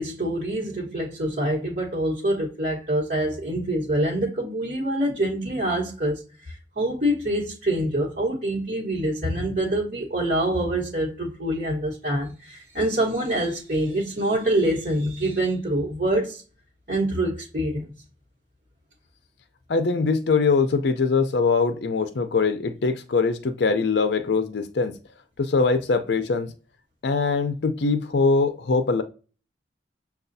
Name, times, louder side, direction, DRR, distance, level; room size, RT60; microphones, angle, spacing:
voice 1, 0.0-16.4 16.9-17.9, right 1 dB, 50° right, 1.2 m, -25 dB
voice 2, 19.7-24.9 25.4-26.5 27.0-29.0, left 4 dB, 60° left, 0.5 m, -22 dB
6.7 x 2.3 x 2.6 m
head